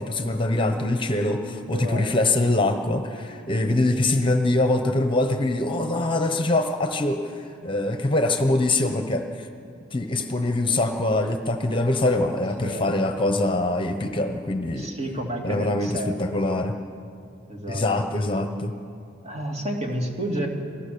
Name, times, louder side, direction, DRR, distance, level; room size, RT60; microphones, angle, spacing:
voice 1, 0.0-9.5 9.9-14.9 15.4-16.8 17.7-18.7, left 2 dB, 25° left, 6 dB, 1.0 m, -24 dB
voice 2, 1.7-2.2 12.6-13.1 14.8-16.4 17.5-18.1 19.2-20.5, right 1 dB, 35° right, 1 dB, 2.7 m, -31 dB
27.5 x 18.0 x 6.9 m, 2.5 s
head